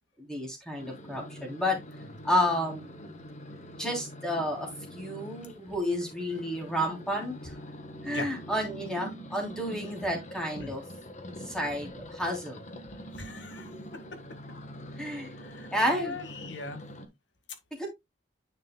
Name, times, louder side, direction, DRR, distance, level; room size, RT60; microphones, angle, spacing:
voice 1, 0.2-1.8 2.2-2.9 3.8-7.6 8.0-10.8 11.4-12.6 15.0-15.3 15.7-16.2 17.8-17.9, left 1 dB, 5° left, 3.2 m, -31 dB
sound 1, 0.8-17.1, equal, 40° left, 1.2 m, -44 dB
voice 2, 13.2-13.8 14.1-14.7 15.3-16.8, left 3 dB, 75° left, 1.8 m, -41 dB
9.8 x 6.6 x 2.2 m
head